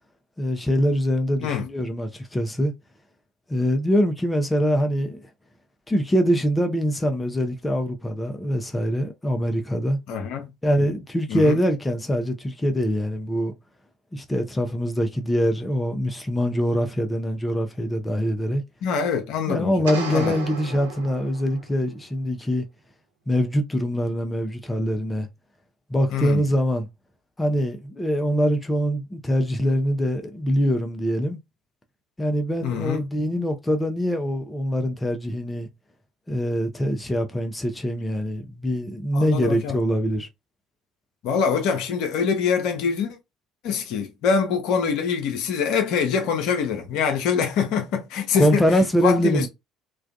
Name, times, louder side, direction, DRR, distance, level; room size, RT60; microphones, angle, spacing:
voice 1, 0.4-2.7 3.5-5.2 5.9-10.0 10.6-13.5 14.1-18.6 19.5-22.7 23.3-25.3 25.9-26.9 27.4-31.4 32.2-35.7 36.3-40.3 48.4-49.5, equal, 15° left, 0.5 m, -23 dB
voice 2, 10.1-10.5 11.3-11.6 18.8-19.7 20.1-20.3 26.1-26.4 32.6-33.1 39.1-39.8 41.2-43.2 43.6-48.6 49.0-49.5, left 6 dB, 60° left, 0.5 m, -24 dB
sound 1, 19.8-21.8, right 5 dB, 75° right, 0.5 m, -34 dB
2.3 x 2.2 x 2.5 m
figure-of-eight pair, 55°, 0 cm